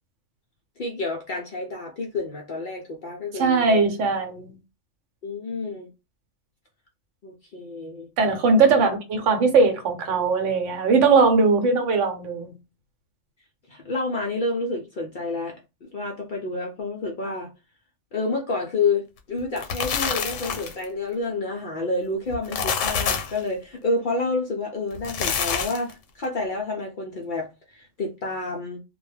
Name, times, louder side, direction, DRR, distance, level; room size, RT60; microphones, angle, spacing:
voice 1, 0.8-3.6 5.2-5.9 7.2-8.1 8.8-8.9 13.7-17.5 18.1-28.8, left 3 dB, 60° left, 0.5 m, -29 dB
voice 2, 3.3-4.5 8.2-12.5, right 4 dB, 80° right, 1.0 m, -20 dB
sound 1, 19.4-20.8 22.3-23.4 24.9-25.9, left 7 dB, 85° left, 1.0 m, -27 dB
2.2 x 2.1 x 3.1 m
omnidirectional pair, 1.3 m